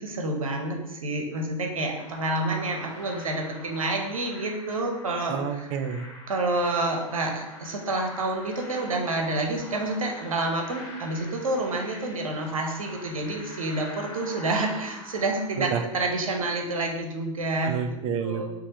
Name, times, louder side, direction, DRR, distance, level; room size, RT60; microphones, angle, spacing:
voice 1, 0.0-5.7 6.3-17.7 18.2-18.5, right 2 dB, 70° right, 2 dB, 0.8 m, -28 dB
sound 1, 1.9-16.3, left 1 dB, 15° left, 1.5 m, -45 dB
voice 2, 5.3-6.1 15.6-15.8 17.6-18.5, right 7 dB, 30° right, 8 dB, 0.4 m, -29 dB
5.8 x 2.5 x 2.9 m, 1.0 s
figure-of-eight pair, 95°, 18 cm